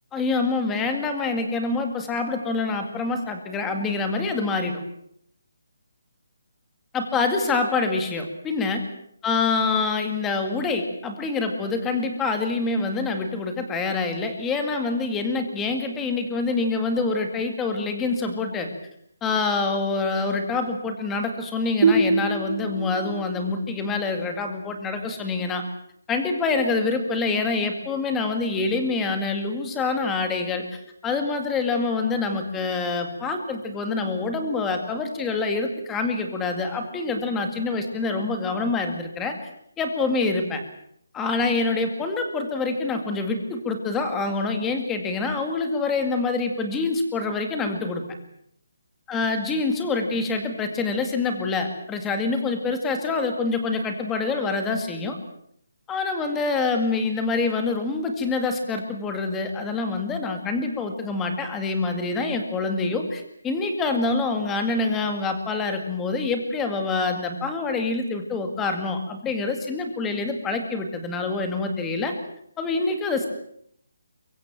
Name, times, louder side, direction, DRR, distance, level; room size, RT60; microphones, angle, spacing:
voice 1, 0.1-4.8 6.9-8.8 9.2-18.7 19.2-25.6 26.1-39.3 39.8-40.6 41.1-48.0 49.1-55.2 55.9-72.1 72.6-73.3, left 3 dB, 10° left, 6 dB, 2.2 m, -26 dB
sound 1, 21.8-25.2, right 3 dB, 45° right, 4.7 m, -25 dB
23.5 x 22.5 x 7.5 m, 0.70 s
hypercardioid pair, 175°, 0 cm